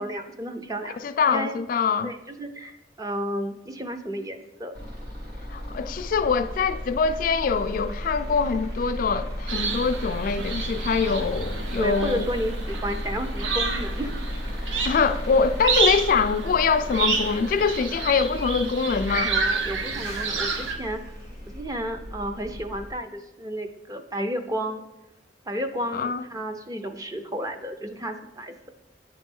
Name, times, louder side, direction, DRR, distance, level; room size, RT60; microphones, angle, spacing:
voice 1, 0.0-1.0 1.3-1.6 2.0-4.7 11.7-14.1 19.3-21.0 21.5-24.8 25.5-28.7, equal, 20° right, 0.5 m, -32 dB
voice 2, 1.0-2.1 5.5-12.2 14.8-19.3 25.9-26.2, left 5 dB, 50° left, 0.3 m, -24 dB
sound 1, 4.7-22.9, equal, 60° right, 1.6 m, -34 dB
sound 2, 9.5-20.8, right 4 dB, 90° right, 0.8 m, -30 dB
9.0 x 3.1 x 5.3 m
head